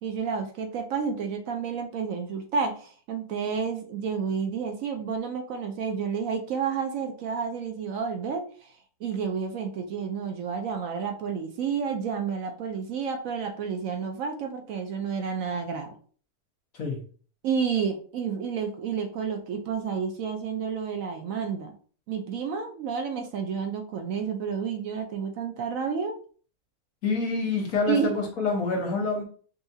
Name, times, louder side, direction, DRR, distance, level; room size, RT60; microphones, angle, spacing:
voice 1, 0.0-8.7 9.0-16.0 17.4-21.7 22.1-26.2 27.9-28.1, right 6 dB, 65° right, 5 dB, 0.9 m, -30 dB
voice 2, 27.0-29.2, left 4 dB, 65° left, 0 dB, 1.4 m, -27 dB
5.4 x 2.4 x 2.7 m, 0.43 s
omnidirectional pair, 1.6 m